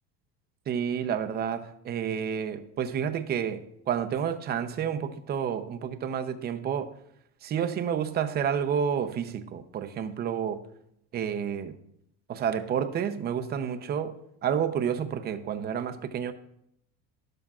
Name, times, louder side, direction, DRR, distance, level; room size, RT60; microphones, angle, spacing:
voice 1, 0.7-6.9 7.4-10.6 11.1-11.8 12.3-14.1 14.4-16.3, right 8 dB, 30° right, 0.7 m, -30 dB
13.0 x 11.0 x 2.4 m
cardioid pair, 150°, 33 cm